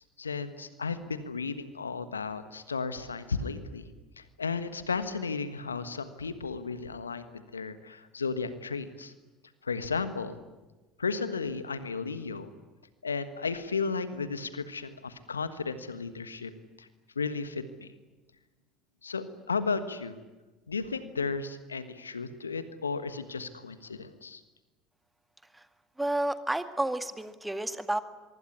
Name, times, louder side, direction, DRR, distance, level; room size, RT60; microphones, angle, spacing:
voice 1, 0.2-3.9 4.2-9.1 9.6-10.4 11.0-12.5 13.0-16.5 16.8-16.9 17.1-17.9 19.0-20.2 20.7-24.4, left 4 dB, 85° left, 12 dB, 1.4 m, -34 dB
voice 2, 26.0-28.0, right 1 dB, 10° right, 10 dB, 2.0 m, -31 dB
24.5 x 23.5 x 9.7 m, 1.2 s
figure-of-eight pair, 65°, 0 cm